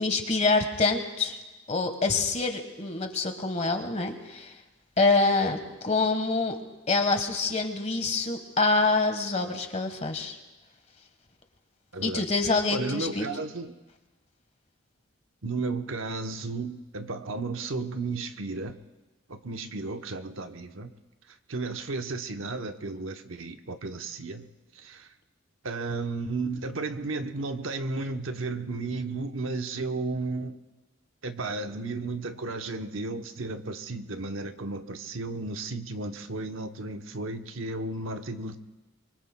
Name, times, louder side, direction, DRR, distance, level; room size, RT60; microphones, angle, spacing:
voice 1, 0.0-1.4 1.7-4.5 5.0-6.6 6.9-10.4 12.0-13.3, left 3 dB, 35° left, 1.3 m, -26 dB
voice 2, 11.9-12.3 12.7-13.8 15.4-18.8 19.3-20.9 21.3-24.5 24.7-25.1 25.6-30.6 31.2-38.6, right 3 dB, 80° right, 0.9 m, -33 dB
25.0 x 24.0 x 2.2 m
head